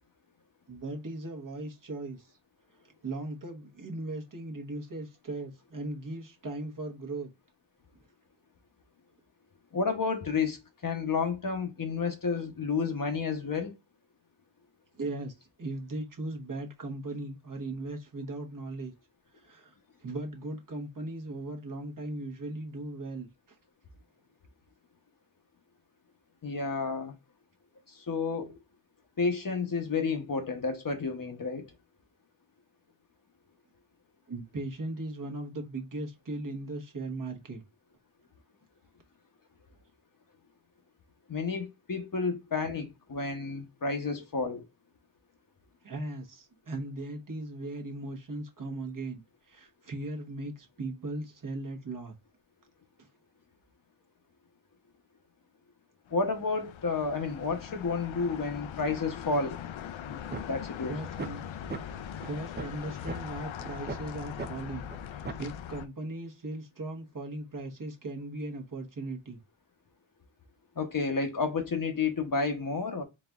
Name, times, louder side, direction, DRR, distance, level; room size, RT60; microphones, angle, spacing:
voice 1, 0.7-2.4 2.8-7.3 14.9-18.9 19.3-19.7 20.0-23.6 34.3-37.6 45.8-52.1 60.9-61.4 62.1-69.4, right 2 dB, 40° right, 1.0 m, -38 dB
voice 2, 9.7-10.6 10.8-13.7 26.4-27.1 27.9-28.6 29.2-31.7 41.3-44.6 56.1-59.6 60.0-61.0 70.8-73.0, left 4 dB, 45° left, 0.8 m, -31 dB
sound 1, 56.1-65.9, left 9 dB, 75° left, 0.5 m, -41 dB
sound 2, 60.3-60.4 60.8-60.9 61.2-61.4 61.7-61.8 62.2-62.3 62.6-62.8 63.1-63.2 63.6-64.0 64.4-64.5 64.9-65.0 65.2-65.5, right 4 dB, 25° right, 0.5 m, -36 dB
4.0 x 3.9 x 2.3 m
wide cardioid pair, 145°, 49 cm